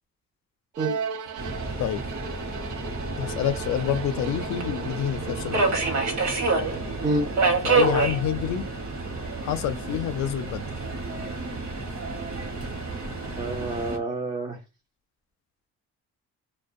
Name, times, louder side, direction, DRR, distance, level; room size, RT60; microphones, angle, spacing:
Bowed string instrument, 0.7-6.5, right 6 dB, 90° right, 0.5 m, -37 dB
Subway metro underground, 1.4-14.0, right 3 dB, 70° right, 0.9 m, -28 dB
voice 1, 3.2-5.6 7.6-8.7 9.4-10.6, left 10 dB, 65° left, 0.4 m, -28 dB
voice 2, 13.4-14.6, right 2 dB, 25° right, 0.4 m, -27 dB
2.3 x 2.1 x 2.5 m
cardioid pair, 90°, 30 cm